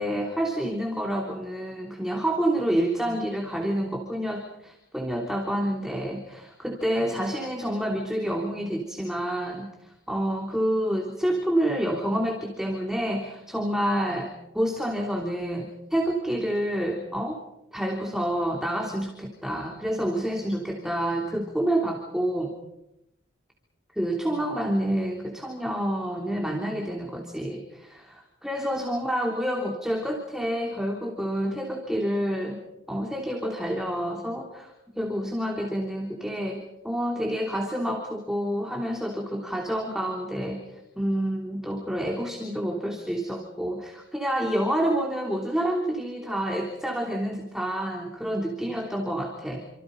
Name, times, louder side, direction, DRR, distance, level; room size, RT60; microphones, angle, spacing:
voice 1, 0.0-17.4 17.7-22.5 23.9-32.6 32.9-40.7 41.0-49.7, right 1 dB, 5° right, 1 dB, 3.2 m, -28 dB
28.5 x 26.5 x 5.3 m, 0.86 s
head